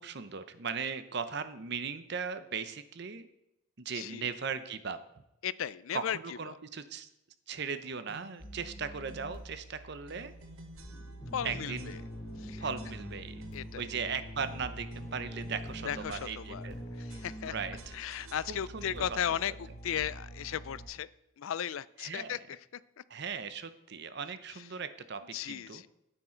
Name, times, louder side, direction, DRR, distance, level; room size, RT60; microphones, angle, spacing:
voice 1, 0.0-3.3 3.8-5.0 5.9-7.1 7.5-10.3 11.4-12.0 12.6-13.4 13.7-16.7 17.5-17.9 18.5-19.0 19.3-19.4 22.0-22.4 23.1-25.8, right 6 dB, 55° right, 0.7 m, -38 dB
voice 2, 3.9-4.3 5.4-6.6 11.3-12.0 12.4-12.6 13.5-13.9 15.8-17.5 17.9-21.1 21.4-23.0 25.3-25.9, left 9 dB, 75° left, 0.4 m, -36 dB
sound 1, 8.1-8.5 9.1-9.4 10.1-11.4 11.8-12.4 12.8-13.8 14.4-16.8 17.1-19.0, right 2 dB, 85° right, 1.1 m, -54 dB
sound 2, 8.4-20.9, equal, 40° left, 3.5 m, -44 dB
9.5 x 9.1 x 4.4 m
head